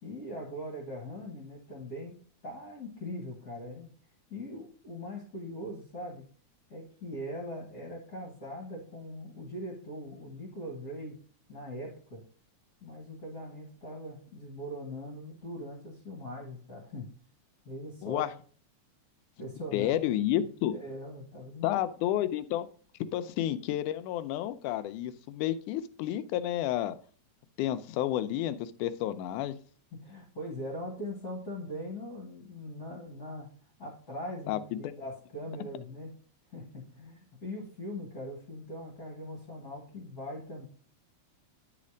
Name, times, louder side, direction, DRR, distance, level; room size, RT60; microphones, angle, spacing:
voice 1, 0.0-2.1 2.4-3.9 4.3-6.3 6.7-11.1 11.5-12.2 12.8-17.1 17.7-18.3 19.4-19.9 20.2-21.8 29.9-33.5 33.8-36.1 36.5-40.7, left 1 dB, 35° left, -2 dB, 1.9 m, -41 dB
voice 2, 18.0-18.3 19.7-20.7 21.6-22.7 23.1-27.0 27.6-29.5 34.5-34.9, left 12 dB, 85° left, 11 dB, 2.1 m, -30 dB
10.0 x 4.2 x 5.0 m, 0.43 s
omnidirectional pair, 3.5 m